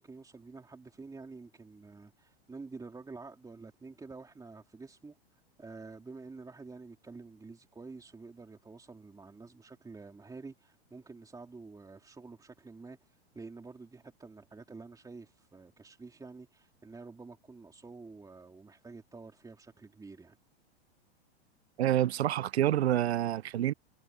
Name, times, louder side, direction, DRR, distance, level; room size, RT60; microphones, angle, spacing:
voice 1, 0.0-20.4, right 4 dB, 10° right, 3.6 m, -49 dB
voice 2, 21.8-23.7, right 12 dB, 90° right, 0.6 m, -27 dB
hypercardioid pair, 115°, 31 cm